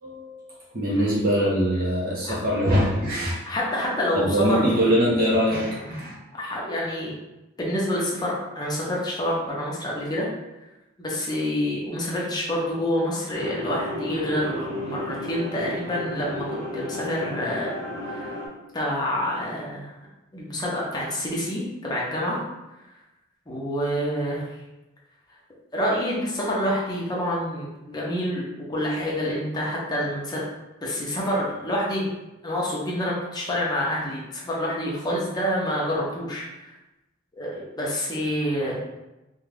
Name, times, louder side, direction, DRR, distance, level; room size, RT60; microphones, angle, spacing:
voice 1, 0.0-3.4 4.1-6.1, equal, 45° right, -6 dB, 0.8 m, -23 dB
voice 2, 3.5-4.6 6.3-7.1 7.6-10.3 11.0-17.7 18.0-18.4 18.7-19.9 20.3-22.4 23.5-24.5 25.7-30.4 30.8-32.1 32.4-36.7 37.4-38.8, equal, 20° left, -5 dB, 0.6 m, -27 dB
sound 1, 13.3-18.5, left 1 dB, 85° right, 1.1 m, -33 dB
2.6 x 2.3 x 3.2 m, 0.99 s
head